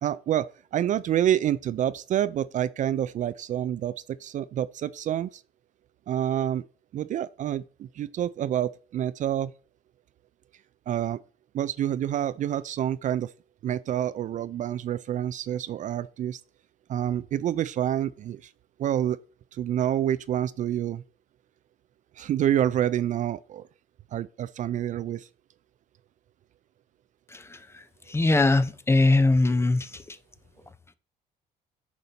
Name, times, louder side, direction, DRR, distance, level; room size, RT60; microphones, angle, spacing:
voice 1, 0.0-5.4 6.1-6.6 6.9-9.5 10.9-11.2 11.5-13.3 13.6-16.4 16.9-18.5 18.8-19.2 19.5-21.0 22.2-23.7 24.1-25.3, right 11 dB, 50° right, 0.4 m, -28 dB
voice 2, 28.1-29.9, left 2 dB, 15° left, 0.6 m, -20 dB
9.4 x 5.4 x 4.0 m
cardioid pair, 110°, 17 cm